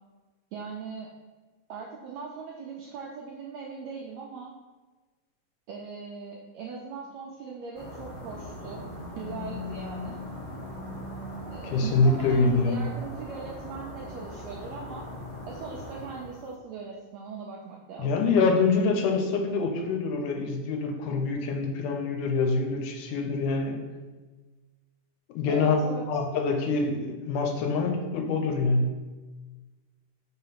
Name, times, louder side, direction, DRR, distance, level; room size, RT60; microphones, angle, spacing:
voice 1, 0.5-1.1 1.7-4.5 5.7-8.9 9.2-10.2 11.5-15.1 15.5-18.1 25.5-26.1, right 5 dB, 80° right, -1 dB, 1.6 m, -40 dB
sound 1, 7.7-16.5, left 1 dB, 20° left, 1.6 m, -40 dB
voice 2, 11.6-12.8 18.0-23.8 25.3-29.0, left 3 dB, 80° left, 3 dB, 2.3 m, -25 dB
5.1 x 3.9 x 5.7 m, 1.3 s
omnidirectional pair, 3.8 m